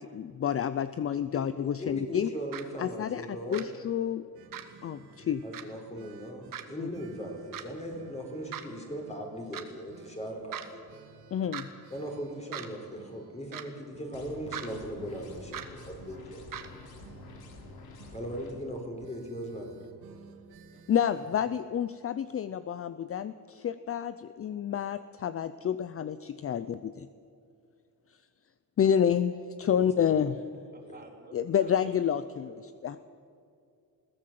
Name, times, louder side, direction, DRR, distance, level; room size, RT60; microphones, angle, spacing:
voice 1, 0.0-2.3 2.8-4.3 4.8-5.4 6.8-6.9 11.3-11.7 20.9-27.1 28.8-30.4 31.3-33.0, left 8 dB, 35° left, 13 dB, 0.6 m, -29 dB
voice 2, 1.8-3.7 5.4-10.8 11.9-16.4 18.1-19.7 29.6-29.8 30.9-31.0, equal, 15° left, 2 dB, 4.5 m, -39 dB
sound 1, 2.5-2.6 3.5-3.6 4.5-4.7 5.5-5.6 6.5-6.6 7.5-7.6 8.5-8.7 9.5-9.6 10.5-10.7 11.5-11.6 12.5-12.7 13.5-13.7 14.5-14.7 15.5-15.7 16.5-16.7, right 9 dB, 60° right, 1.7 m, -38 dB
sound 2, 4.3-21.5, right 5 dB, 80° right, 2.1 m, -55 dB
sound 3, 14.1-18.5, left 3 dB, 75° left, 3.3 m, -48 dB
voice 3, 30.7-32.0 32.3-33.0, right 3 dB, 25° right, 0 dB, 3.5 m, -53 dB
21.5 x 16.5 x 7.7 m, 2.4 s
cardioid pair, 125°, 38 cm